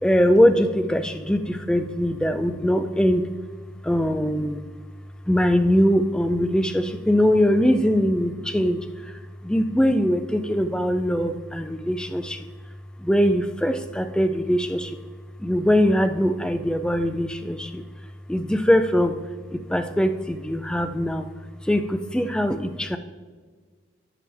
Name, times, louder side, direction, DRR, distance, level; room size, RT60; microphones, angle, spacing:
voice 1, 0.0-3.3 3.8-4.6 5.3-12.5 13.0-15.0 15.4-17.8 18.3-19.2 19.5-21.3 21.6-23.0, equal, 5° left, 9 dB, 0.3 m, -22 dB
11.5 x 7.7 x 3.4 m, 1.5 s
head